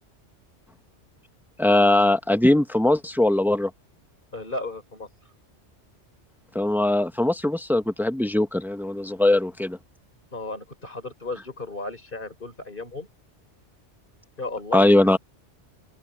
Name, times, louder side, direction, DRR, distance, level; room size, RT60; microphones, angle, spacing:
voice 1, 1.6-3.7 6.5-9.8 14.7-15.2, left 1 dB, ahead, 0.9 m, -20 dB
voice 2, 4.3-5.1 10.3-13.1 14.4-14.9, left 2 dB, 45° left, 4.1 m, -34 dB
open air
omnidirectional pair, 1.2 m